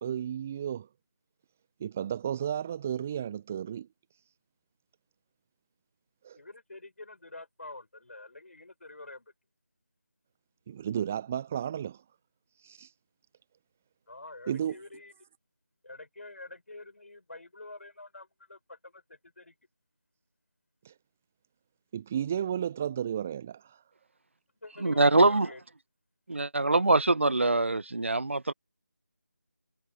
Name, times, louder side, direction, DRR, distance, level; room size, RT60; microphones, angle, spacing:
voice 1, 0.0-0.9 1.8-3.9 6.2-6.4 10.7-12.0 12.6-12.9 14.5-14.8 20.8-20.9 21.9-23.8, right 9 dB, 5° right, 0.5 m, -33 dB
voice 2, 6.3-9.3 14.1-15.1 15.8-19.5 24.6-25.6, left 2 dB, 50° left, 6.9 m, -47 dB
voice 3, 24.8-25.5 26.3-28.5, right 2 dB, 45° right, 1.3 m, -23 dB
figure-of-eight pair, 165°, 9 cm